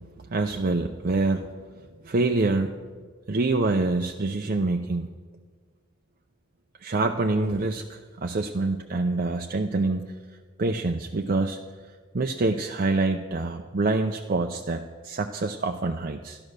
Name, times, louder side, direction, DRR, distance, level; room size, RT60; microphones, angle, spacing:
voice 1, 0.2-1.6 2.0-2.7 3.3-5.1 6.8-10.1 10.6-11.6 12.1-16.4, right 3 dB, 45° right, 4 dB, 0.6 m, -26 dB
12.5 x 11.0 x 6.6 m, 1.5 s
head